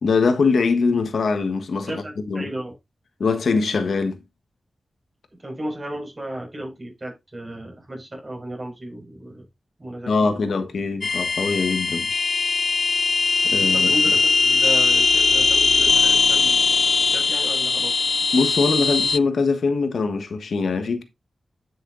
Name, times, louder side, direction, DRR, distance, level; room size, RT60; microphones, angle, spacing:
voice 1, 0.0-2.0 2.3-2.5 3.2-4.2 10.1-12.1 13.4-14.1 18.3-21.0, left 4 dB, 85° left, 1.4 m, -22 dB
voice 2, 1.9-2.7 5.4-9.4 9.8-10.4 13.5-16.6 17.0-18.1, right 1 dB, 30° right, 5.5 m, -34 dB
sound 1, 11.0-19.2, left 4 dB, 55° left, 0.3 m, -20 dB
10.5 x 6.2 x 2.6 m
wide cardioid pair, 95°, 0 cm